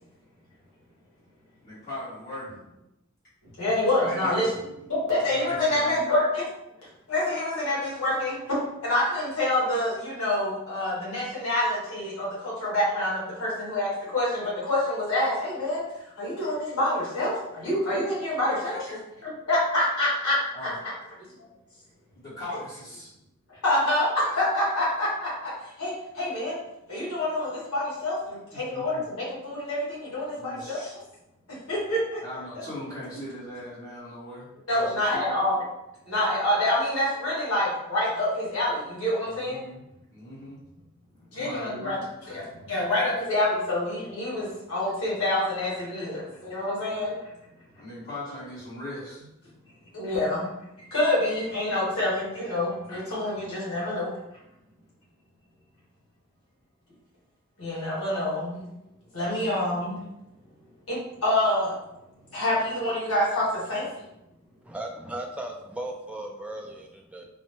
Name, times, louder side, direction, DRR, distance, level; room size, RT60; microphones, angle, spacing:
voice 1, 1.6-2.6 4.0-4.7 5.3-6.0 18.6-19.0 20.5-20.8 22.1-23.1 28.5-29.0 30.3-30.9 32.2-35.3 39.3-39.8 40.1-40.6 41.2-42.0 47.7-49.3, left 1 dB, 45° left, -13 dB, 1.3 m, -40 dB
voice 2, 3.6-4.5 4.9-6.4 7.1-15.8 16.2-18.8 19.2-20.4 23.6-26.5 26.9-30.8 31.5-32.2 34.7-35.6 36.1-39.6 41.3-42.0 42.2-47.1 49.9-50.5 50.9-54.1 57.6-58.6 59.1-60.0 60.9-61.7 62.3-63.8, left 1 dB, 75° left, -7 dB, 1.4 m, -27 dB
voice 3, 64.6-67.3, right 1 dB, 5° right, 1 dB, 0.3 m, -36 dB
4.1 x 2.1 x 3.1 m, 0.88 s
head